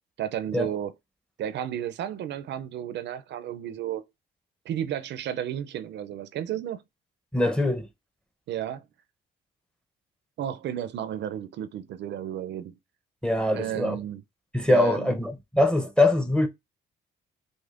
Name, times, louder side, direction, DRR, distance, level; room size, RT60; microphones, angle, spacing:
voice 1, 0.2-0.9 1.4-4.0 4.7-6.8 8.5-8.8 10.4-12.8 13.5-14.2 14.7-15.2, right 10 dB, 65° right, 0.4 m, -32 dB
voice 2, 7.3-7.9 13.2-14.0 14.5-16.5, left 1 dB, 5° left, 0.6 m, -23 dB
4.9 x 2.1 x 2.4 m
cardioid pair, 90°, 20 cm